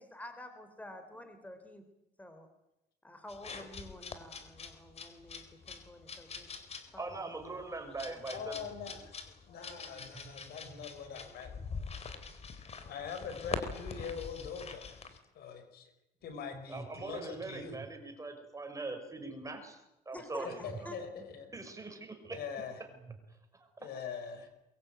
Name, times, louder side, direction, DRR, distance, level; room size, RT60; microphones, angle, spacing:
voice 1, 0.0-1.8 2.2-2.5 3.0-6.5 6.9-7.1 8.0-8.2 20.1-21.0, left 1 dB, 10° left, 8 dB, 3.8 m, -49 dB
sound 1, 3.3-15.2, left 5 dB, 40° left, 3.9 m, -44 dB
voice 2, 7.0-8.6 10.2-11.2 11.6-11.7 16.5-19.8 20.1-22.4 23.5-23.9, right 3 dB, 20° right, 6 dB, 5.6 m, -43 dB
voice 3, 8.3-9.1 9.5-11.5 12.9-15.9 16.2-17.8 20.4-21.5 22.3-22.8 23.8-24.5, left 6 dB, 70° left, 9 dB, 5.5 m, -43 dB
23.0 x 22.5 x 9.1 m, 0.88 s
cardioid pair, 110°, 17 cm